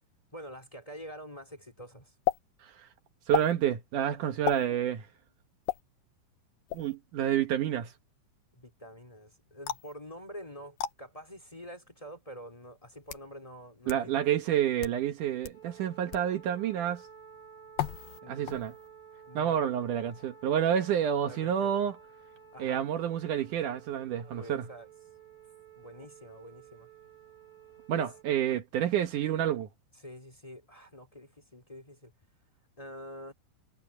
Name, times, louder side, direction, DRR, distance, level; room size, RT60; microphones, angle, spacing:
voice 1, 0.3-2.1 8.5-14.2 18.2-18.8 19.2-19.7 21.3-21.9 22.5-22.8 24.2-24.9 25.7-26.9 27.9-28.1 29.9-32.1 32.8-33.3, equal, 15° left, 1.3 m, -47 dB
sound 1, 2.3-2.4 3.3-3.5 4.5-4.7 5.7-5.8 6.7-7.0 9.7-9.9 10.8-10.9 11.9-12.0 12.8-13.3 13.9-14.0 14.7-15.0 15.4-15.6 16.1-16.3 17.8-18.2 18.5-18.9, left 12 dB, 70° left, 2.2 m, -33 dB
voice 2, 3.3-5.1 6.7-7.9 13.9-17.0 18.3-18.7 19.3-22.0 22.6-24.7 27.9-29.7, right 10 dB, 90° right, 1.8 m, -29 dB
sound 2, 15.5-28.2, right 7 dB, 45° left, 9.5 m, -53 dB
omnidirectional pair, 5.6 m